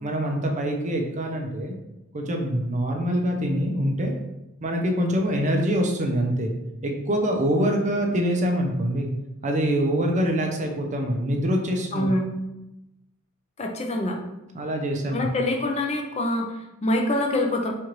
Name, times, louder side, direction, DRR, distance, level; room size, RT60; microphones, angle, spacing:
voice 1, 0.0-1.7 2.1-4.1 4.6-6.5 6.8-9.1 9.4-12.1 14.0-14.1 14.5-15.3, equal, 35° right, 2 dB, 0.5 m, -25 dB
voice 2, 11.9-12.2 13.6-14.2 15.1-17.7, left 1 dB, 30° left, 1 dB, 0.5 m, -25 dB
4.4 x 2.5 x 3.0 m, 0.95 s
head